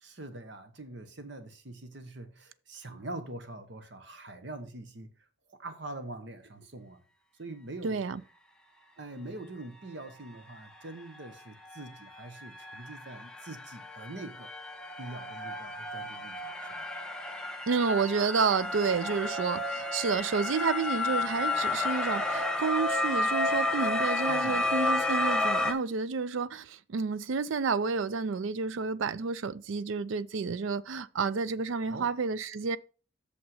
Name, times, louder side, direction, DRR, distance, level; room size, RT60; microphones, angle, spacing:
voice 1, 0.0-5.1 5.5-7.0 7.4-8.0 9.0-14.5 15.0-16.9 24.3-24.6 31.8-32.1, right 2 dB, 60° right, 1.1 m, -44 dB
voice 2, 7.8-8.2 17.7-32.8, right 5 dB, 75° right, 0.4 m, -30 dB
sound 1, 11.2-11.3 11.6-25.7, left 2 dB, 5° left, 0.7 m, -31 dB
6.6 x 5.8 x 5.4 m
head